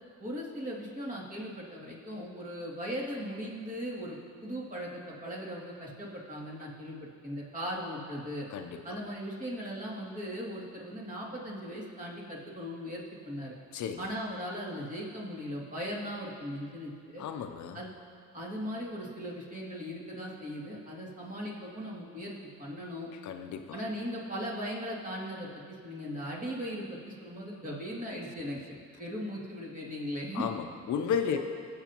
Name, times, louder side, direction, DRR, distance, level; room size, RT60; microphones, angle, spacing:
voice 1, 0.2-7.0 7.2-8.5 8.8-13.6 14.0-17.2 17.7-17.9 18.3-22.3 22.6-23.1 23.7-30.5, equal, 25° right, -4 dB, 2.6 m, -38 dB
voice 2, 8.5-9.0 13.7-14.0 17.2-17.8 23.2-23.8 30.3-31.4, left 7 dB, 70° left, 7 dB, 0.7 m, -33 dB
19.0 x 7.5 x 3.0 m, 2.2 s
cardioid pair, 90°, 30 cm